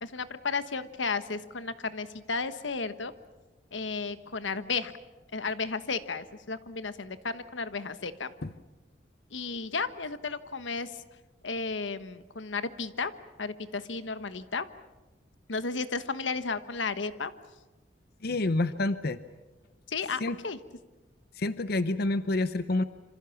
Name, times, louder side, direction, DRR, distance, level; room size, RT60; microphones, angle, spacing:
voice 1, 0.0-3.1 3.7-4.9 5.3-8.3 9.3-10.9 11.4-13.1 13.4-14.6 15.5-17.3 19.9-20.6, left 4 dB, 90° left, 12 dB, 1.3 m, -33 dB
voice 2, 18.2-19.2 20.2-20.4 21.4-22.8, left 2 dB, 55° left, 12 dB, 0.8 m, -28 dB
26.5 x 26.5 x 7.2 m, 1.2 s
head